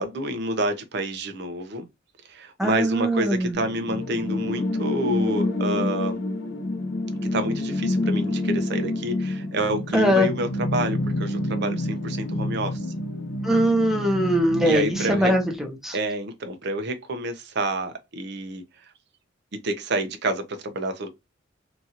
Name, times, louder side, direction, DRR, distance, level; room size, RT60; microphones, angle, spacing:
voice 1, 0.0-1.9 2.3-6.2 7.3-12.8 14.6-15.3 15.9-18.6 19.6-21.1, right 1 dB, 60° right, 0.6 m, -28 dB
voice 2, 2.6-3.5 9.9-10.3 13.4-16.0, equal, ahead, 0.7 m, -21 dB
sound 1, 3.5-15.5, left 1 dB, 65° left, 0.5 m, -28 dB
2.9 x 2.5 x 2.7 m
head